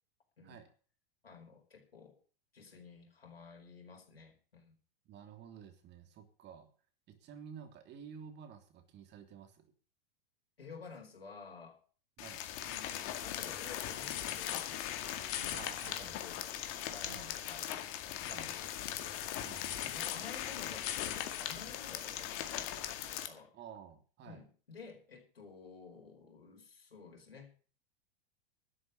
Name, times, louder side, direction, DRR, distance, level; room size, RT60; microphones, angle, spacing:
voice 1, 1.2-2.2 2.5-4.8 10.6-11.8 12.6-14.8 15.3-16.4 16.9-17.7 18.0-18.6 19.8-22.7 23.0-23.5 24.2-27.6, left 5 dB, 90° left, 0 dB, 4.8 m, -52 dB
voice 2, 5.0-6.7 7.1-9.7 12.2-12.4 15.5-16.5 17.0-17.3 18.3-18.5 19.4-19.9 23.5-24.4, right 7 dB, 35° right, 7 dB, 3.3 m, -52 dB
sound 1, 12.2-23.3, left 11 dB, 45° left, 2.2 m, -39 dB
12.5 x 7.7 x 9.0 m, 0.40 s
hypercardioid pair, 100°, 29 cm